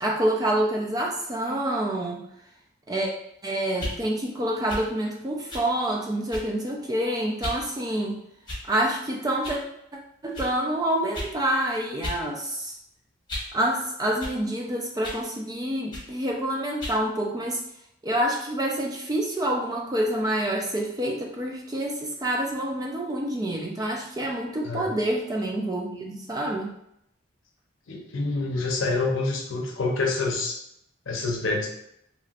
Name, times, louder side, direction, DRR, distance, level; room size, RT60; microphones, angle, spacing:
voice 1, 0.0-2.3 2.9-3.1 3.4-8.2 8.6-9.6 10.2-12.8 13.5-17.6 18.0-26.7, right 1 dB, 20° right, 0 dB, 0.4 m, -27 dB
sound 1, 3.7-4.0 4.7-4.9 5.5-5.7 6.3-6.6 7.4-7.6 8.4-8.8 9.4-9.6 10.3-10.5 11.1-11.3 12.0-12.2 12.6-13.6 14.2-14.4 15.0-15.3 15.9-16.1 16.8-17.0, left 1 dB, 20° left, 1.0 m, -35 dB
voice 2, 24.6-25.0 27.9-30.6 31.1-31.7, left 3 dB, 85° left, 0 dB, 0.7 m, -27 dB
3.0 x 2.9 x 2.4 m, 0.76 s
head